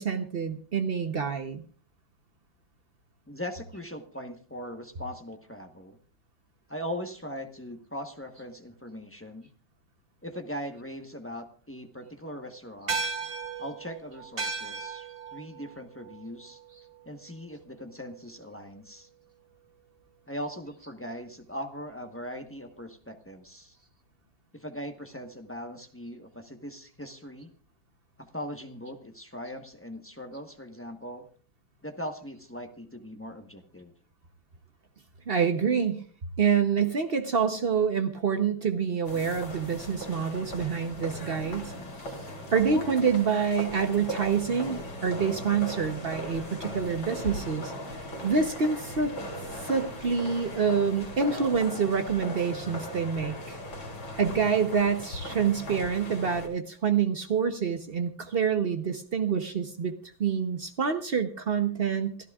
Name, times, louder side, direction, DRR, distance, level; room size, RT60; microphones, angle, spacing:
voice 1, 0.0-1.6 35.3-36.0 36.4-41.7 42.1-42.2 42.5-47.7 48.2-49.1 49.6-53.6 54.2-62.2, right 6 dB, 70° right, 7 dB, 0.5 m, -27 dB
voice 2, 3.3-6.0 6.7-9.5 10.2-13.0 13.6-16.6 17.0-19.1 20.3-23.8 24.5-27.5 28.2-31.3 31.8-33.9, equal, 20° left, 5 dB, 0.4 m, -40 dB
sound 1, 12.9-17.6, right 4 dB, 30° right, 1.4 m, -36 dB
sound 2, 39.1-56.5, equal, 70° left, 4.5 m, -38 dB
28.0 x 13.5 x 2.4 m, 0.40 s
omnidirectional pair, 2.3 m